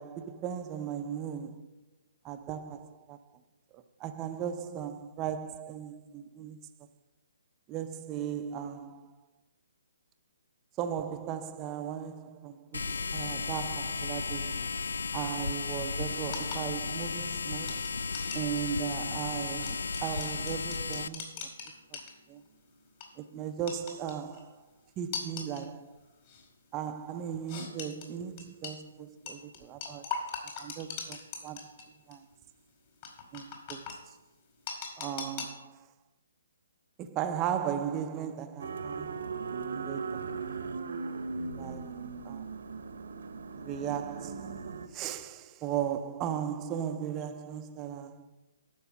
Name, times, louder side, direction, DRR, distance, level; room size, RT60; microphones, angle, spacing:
voice 1, 0.0-1.7 2.2-3.4 3.7-6.7 7.7-9.1 10.8-14.7 15.1-17.9 18.3-21.5 22.3-22.4 23.2-24.6 25.0-26.0 26.7-30.1 30.6-32.3 33.3-34.0 35.0-35.9 37.0-39.2 39.7-40.3 41.5-42.5 43.5-44.6 44.9-48.3, right 9 dB, 20° right, 0.5 m, -37 dB
sound 1, 12.7-21.1, left 4 dB, 85° left, 0.3 m, -34 dB
sound 2, 16.3-22.5 22.9-23.1 23.7-24.4 25.1-25.7 26.3-26.5 27.5-28.8 29.3-31.8 32.1-32.2 33.0-34.0 34.7-35.5, left 6 dB, 35° left, 2.3 m, -40 dB
sound 3, 38.6-44.9, right 4 dB, 75° right, 0.9 m, -38 dB
11.5 x 4.8 x 7.1 m
hypercardioid pair, 160°, 0 cm